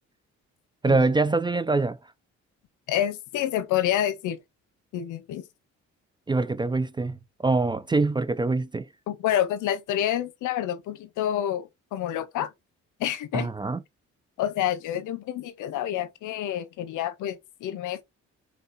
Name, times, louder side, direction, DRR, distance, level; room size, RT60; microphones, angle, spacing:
voice 1, 0.8-2.0 6.3-8.9 13.3-13.8, right 3 dB, 15° right, 0.3 m, -24 dB
voice 2, 2.9-4.4 4.9-5.4 9.1-12.5 13.0-13.5 14.4-18.0, left 11 dB, 85° left, 0.7 m, -28 dB
4.2 x 3.6 x 2.6 m
cardioid pair, 90°, 30 cm